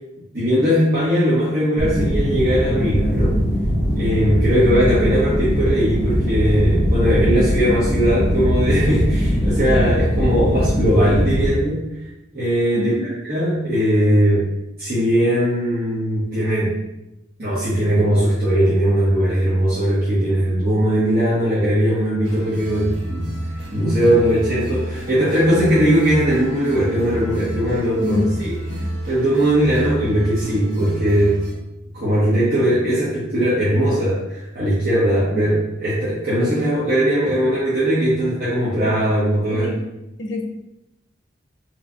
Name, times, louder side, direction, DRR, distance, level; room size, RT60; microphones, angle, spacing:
voice 1, 0.3-3.4 3.9-11.8 12.3-14.5 14.8-16.7 17.4-23.3 23.7-28.5 29.1-31.4 31.9-39.7, equal, 50° right, -11 dB, 1.0 m, -19 dB
sound 1, 1.8-11.5, equal, 15° right, 1.0 m, -20 dB
voice 2, 12.7-13.1 22.2-22.3 28.0-28.3 35.3-35.4 39.5-39.8 40.2-40.5, left 1 dB, 70° left, 2 dB, 0.6 m, -25 dB
sound 2, 22.2-31.5, equal, 90° right, 1.0 m, -31 dB
3.7 x 3.0 x 2.6 m, 0.90 s
head